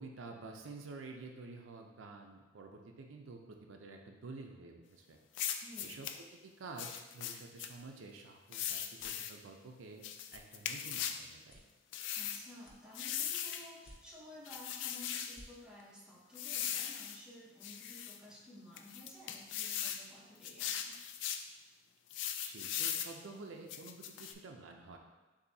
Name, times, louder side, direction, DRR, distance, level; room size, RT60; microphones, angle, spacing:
voice 1, 0.0-5.2 5.8-6.1 6.4-10.0 10.3-11.6 22.4-25.0, right 3 dB, 85° right, 2 dB, 0.5 m, -50 dB
sound 1, 5.3-6.2 6.8-7.7 8.5-9.4 10.0-11.2 11.9-12.4 12.9-13.7 14.4-15.4 16.4-17.2 17.6-18.2 18.8-20.0 20.4-21.5 22.1-23.1 23.7-24.3, left 9 dB, 65° left, 0.3 m, -39 dB
voice 2, 5.6-6.0 12.1-21.0, left 1 dB, 5° right, -5 dB, 0.8 m, -54 dB
sound 2, 8.9-9.3 9.8-10.0 10.2-10.4 10.9-11.0 11.4-12.2 12.6-13.3 13.7-14.4 14.8-14.9 15.2-15.5, left 1 dB, 50° left, 0.7 m, -58 dB
6.8 x 2.7 x 2.7 m, 1.2 s
head